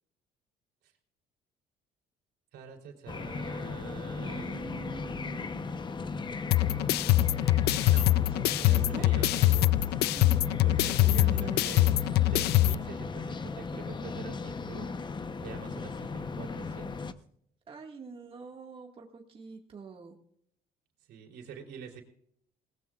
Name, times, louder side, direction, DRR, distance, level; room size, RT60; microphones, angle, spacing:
voice 1, 2.5-6.5 7.9-8.1 8.6-9.8 10.6-11.9 12.3-14.9 15.4-17.2 21.1-22.0, right 6 dB, 75° right, 3 dB, 3.5 m, -46 dB
sound 1, 3.1-17.1, left 4 dB, 25° left, 0.9 m, -37 dB
voice 2, 4.2-5.7 8.1-8.6 8.8-9.1 10.1-10.7 11.0-12.0 17.7-20.2, right 5 dB, 30° right, 1 dB, 1.8 m, -45 dB
sound 2, 6.5-12.7, left 15 dB, 75° left, 0.4 m, -24 dB
20.0 x 19.0 x 2.4 m, 0.67 s
cardioid pair, 110°, 17 cm